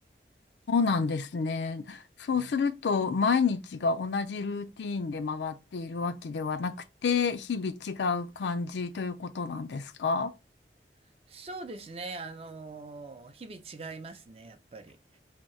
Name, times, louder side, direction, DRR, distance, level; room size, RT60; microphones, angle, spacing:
voice 1, 0.7-10.3, left 5 dB, 80° left, 0.4 m, -29 dB
voice 2, 11.3-15.2, right 3 dB, 35° right, 0.5 m, -42 dB
2.8 x 2.7 x 4.3 m
head